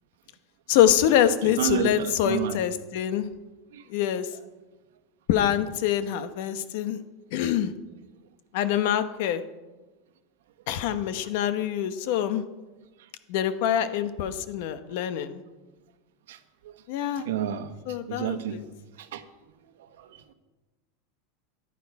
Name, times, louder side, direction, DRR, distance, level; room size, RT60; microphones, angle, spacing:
voice 1, 0.7-3.3 3.9-4.3 5.3-7.0 7.3-7.7 8.5-9.4 10.7-12.4 13.3-15.4 16.9-17.2 17.9-18.6, left 10 dB, 60° left, 11 dB, 1.0 m, -25 dB
voice 2, 1.4-2.6 3.7-3.8 11.0-11.1 16.3-16.4 16.6-16.7 17.2-17.7 18.1-18.6 19.0-19.2 20.0-20.3, right 10 dB, 90° right, 10 dB, 1.2 m, -30 dB
14.5 x 11.0 x 4.8 m, 1.2 s
supercardioid pair, 160°, 0 cm